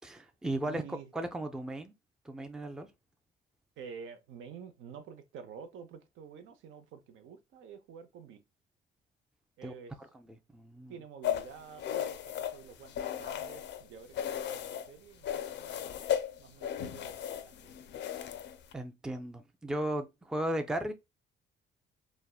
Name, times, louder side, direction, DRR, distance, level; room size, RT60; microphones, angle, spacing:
voice 1, 0.0-1.9 2.3-2.9 9.6-9.7 10.0-10.3 10.5-11.0 18.7-20.9, right 1 dB, 5° right, 0.4 m, -36 dB
voice 2, 0.6-1.1 3.8-8.4 9.6-9.9 10.9-16.0 16.4-17.7, right 7 dB, 80° right, 0.6 m, -49 dB
sound 1, 11.2-13.8 14.1-14.9 15.2-18.7, left 10 dB, 65° left, 0.4 m, -36 dB
3.4 x 2.1 x 2.3 m
cardioid pair, 90°, 20 cm